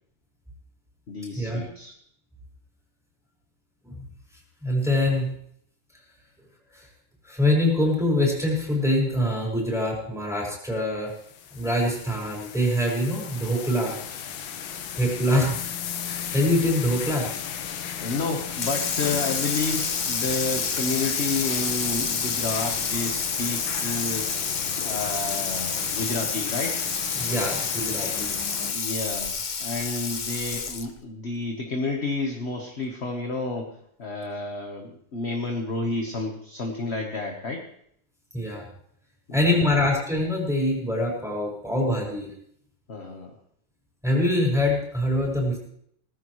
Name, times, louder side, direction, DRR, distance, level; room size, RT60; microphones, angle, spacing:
voice 1, 1.1-1.9 14.7-14.9 18.0-24.3 24.8-26.8 28.7-37.6 39.3-39.7 42.9-43.4, left 3 dB, 35° left, 2 dB, 1.4 m, -30 dB
voice 2, 4.6-5.3 6.7-6.8 7.3-11.1 11.5-14.0 15.0-15.6 16.1-17.3 27.2-28.3 38.3-38.6 39.3-42.3 44.0-45.6, left 1 dB, ahead, -3 dB, 5.0 m, -24 dB
sound 1, 11.1-28.7, left 8 dB, 85° left, 1.7 m, -35 dB
Water tap faucet / Sink (filling or washing), 18.5-31.0, left 5 dB, 65° left, 0.4 m, -29 dB
18.5 x 14.5 x 3.2 m, 0.68 s
omnidirectional pair, 2.1 m